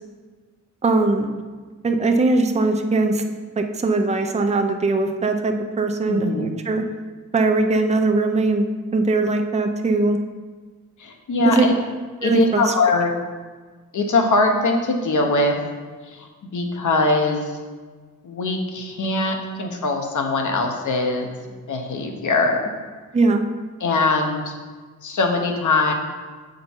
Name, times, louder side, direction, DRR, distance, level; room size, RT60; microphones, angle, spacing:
voice 1, 0.8-1.4 1.8-3.2 3.6-6.8 7.3-8.7 8.9-10.2 11.4-11.7 12.2-12.6 23.1-23.4, right 3 dB, 20° right, 5 dB, 0.4 m, -20 dB
voice 2, 6.1-6.5 11.0-11.7 12.2-13.1 13.9-15.6 16.1-17.6 18.2-21.3 21.7-22.7 23.8-24.5 25.0-25.9, left 3 dB, 75° left, 3 dB, 1.0 m, -21 dB
6.6 x 5.1 x 4.4 m, 1.4 s
wide cardioid pair, 175°, 31 cm